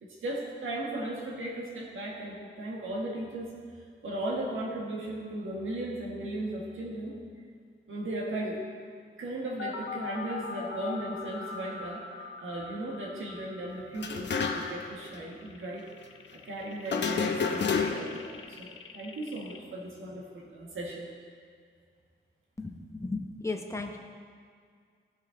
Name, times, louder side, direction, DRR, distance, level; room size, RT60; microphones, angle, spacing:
voice 1, 0.0-3.5 4.0-7.1 7.9-8.6 9.2-12.0 12.4-15.8 16.4-21.1, right 1 dB, 80° right, -3 dB, 1.5 m, -36 dB
sound 1, 9.6-19.6, left 5 dB, 85° left, 0.6 m, -43 dB
sound 2, 14.0-14.9 15.1-15.2 16.9-18.2, left 5 dB, 60° left, 0.8 m, -29 dB
voice 2, 22.6-24.0, left 3 dB, 15° left, 2 dB, 0.9 m, -35 dB
15.5 x 5.4 x 3.8 m, 2.1 s
wide cardioid pair, 110°, 20 cm